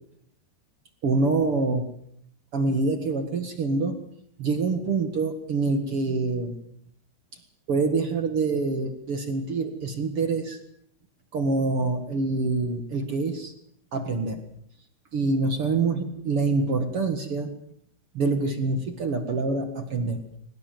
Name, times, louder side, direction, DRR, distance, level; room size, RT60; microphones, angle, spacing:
voice 1, 1.0-1.8 2.5-4.0 4.4-6.5 7.7-10.6 11.3-13.5 13.9-14.4 15.1-17.5 18.1-20.2, right 3 dB, 60° right, 8 dB, 1.4 m, -26 dB
23.5 x 20.0 x 7.8 m, 0.68 s
omnidirectional pair, 5.4 m